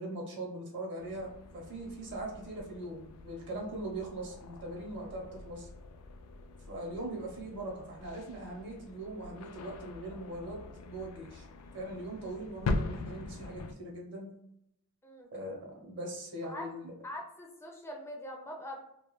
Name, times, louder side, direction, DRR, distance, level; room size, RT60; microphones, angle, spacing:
voice 1, 0.0-5.7 6.7-11.5 11.7-14.3 15.3-16.9, right 1 dB, 55° right, -1 dB, 0.7 m, -41 dB
sound 1, 1.0-13.7, left 2 dB, 85° left, 0.3 m, -42 dB
voice 2, 17.0-18.8, left 1 dB, 10° left, 1 dB, 0.4 m, -43 dB
2.3 x 2.1 x 2.9 m, 0.79 s
head